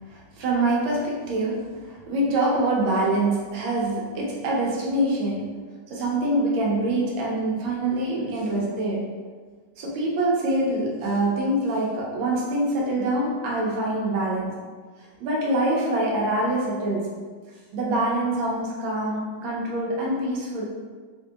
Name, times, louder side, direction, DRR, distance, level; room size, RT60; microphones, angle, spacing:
voice 1, 0.1-5.6 5.9-9.1 9.8-14.6 15.2-17.1 17.7-20.7, right 1 dB, 85° right, -3 dB, 1.4 m, -25 dB
3.2 x 2.6 x 2.3 m, 1.5 s
omnidirectional pair, 2.2 m